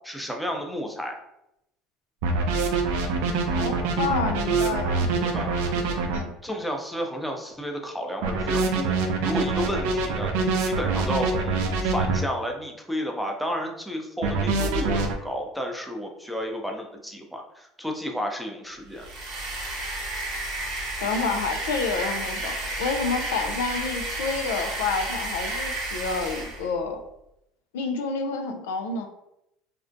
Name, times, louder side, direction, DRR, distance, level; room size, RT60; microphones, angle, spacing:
voice 1, 0.1-1.2 5.2-5.5 6.4-8.9 9.2-10.3 10.6-19.1, equal, ahead, 2 dB, 0.5 m, -32 dB
sound 1, 2.2-6.2 8.2-12.2 14.2-15.1, right 4 dB, 75° right, 0.4 m, -24 dB
voice 2, 3.5-5.1 6.1-6.3 21.0-27.0 27.7-29.1, left 4 dB, 85° left, 5 dB, 0.3 m, -29 dB
sound 2, 18.9-26.7, right 2 dB, 60° right, 0.9 m, -32 dB
2.5 x 2.1 x 2.5 m, 0.83 s
supercardioid pair, 85°, 0 cm